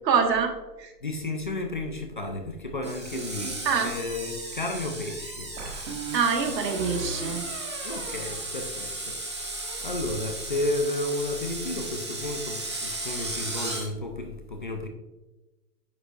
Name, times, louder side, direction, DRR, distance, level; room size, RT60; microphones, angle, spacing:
voice 1, 0.0-0.5 0.8-0.9 3.6-4.0 6.1-7.4, right 6 dB, 85° right, 1.7 m, -25 dB
voice 2, 1.0-5.5 7.8-14.9, left 2 dB, 35° left, 0.4 m, -32 dB
Screech, 2.8-13.9, right 2 dB, 20° right, 0.5 m, -36 dB
sound 1, 2.8-3.7 5.6-9.1 9.4-9.8, right 3 dB, 45° right, 1.6 m, -39 dB
9.4 x 6.6 x 2.4 m
hypercardioid pair, 175°, 48 cm